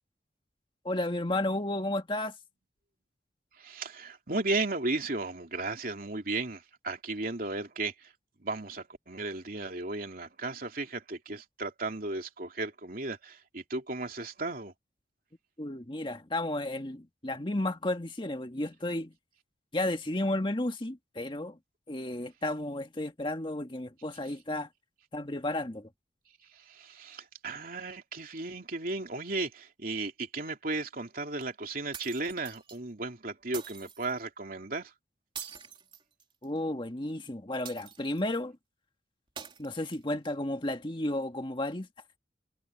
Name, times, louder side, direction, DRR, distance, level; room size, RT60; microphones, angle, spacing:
voice 1, 0.8-2.4 15.6-19.1 19.7-21.6 21.9-24.7 25.1-25.9 36.4-38.6 39.6-41.9, left 1 dB, 25° left, 1.8 m, -33 dB
voice 2, 3.6-8.1 8.4-14.7 26.5-34.9, right 3 dB, 50° right, 3.1 m, -35 dB
sound 1, 31.9-32.8 33.5-34.1 35.3-36.6 37.6-38.3 39.4-40.3, right 7 dB, 30° right, 3.2 m, -45 dB
head